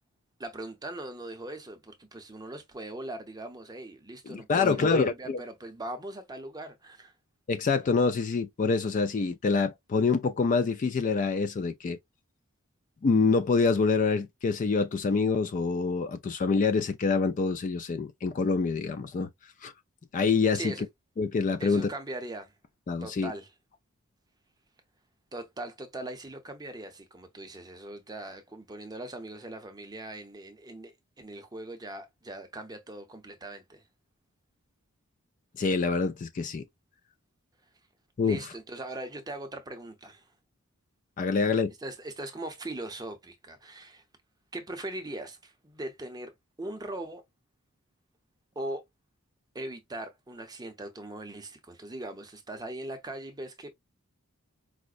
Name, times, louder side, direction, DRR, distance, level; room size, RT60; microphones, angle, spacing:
voice 1, 0.4-7.1 20.5-20.8 21.6-22.5 23.0-23.5 25.3-33.8 38.2-40.3 41.8-44.0 44.5-46.3 46.6-47.2 48.6-48.8 49.5-53.7, right 1 dB, 20° right, 0.6 m, -40 dB
voice 2, 4.3-5.4 7.5-12.0 13.0-19.3 19.6-19.7 20.1-20.7 21.2-21.9 22.9-23.3 35.6-36.6 38.2-38.4 41.2-41.7, left 4 dB, 35° left, 0.3 m, -26 dB
4.8 x 2.0 x 2.4 m
head